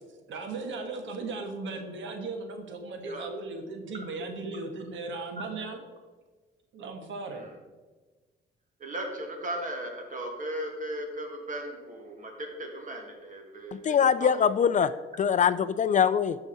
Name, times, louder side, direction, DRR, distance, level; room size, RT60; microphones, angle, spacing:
voice 1, 0.3-5.8 6.7-7.4, right 3 dB, 75° right, 5 dB, 1.3 m, -37 dB
voice 2, 8.8-14.3, right 1 dB, 40° right, 2 dB, 2.2 m, -37 dB
voice 3, 13.7-14.9 15.2-16.4, left 7 dB, 40° left, 14 dB, 0.4 m, -23 dB
13.0 x 4.8 x 4.2 m, 1.3 s
cardioid pair, 90°, 20 cm